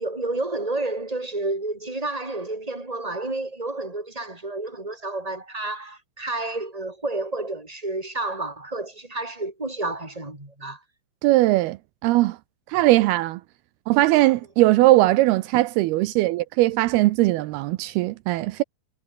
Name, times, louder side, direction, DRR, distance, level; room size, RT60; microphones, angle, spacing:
voice 1, 0.0-10.8, right 2 dB, 10° right, 4.6 m, -30 dB
voice 2, 11.2-11.8 12.0-12.4 12.7-13.4 13.9-18.6, right 18 dB, 90° right, 2.2 m, -19 dB
omnidirectional pair, 5.5 m